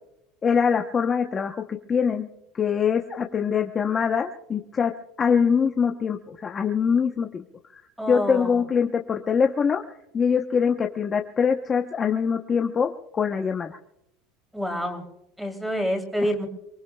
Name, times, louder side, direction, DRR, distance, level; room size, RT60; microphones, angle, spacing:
voice 1, 0.4-1.6 1.9-2.3 2.5-4.9 5.2-7.4 7.7-7.8 8.1-9.8 10.1-13.8, left 6 dB, 25° left, 3 dB, 0.8 m, -23 dB
voice 2, 8.0-8.6 14.5-15.0 15.4-16.5, equal, ahead, 4 dB, 3.0 m, -27 dB
29.0 x 20.0 x 2.3 m, 0.85 s
cardioid pair, 150°, 0 cm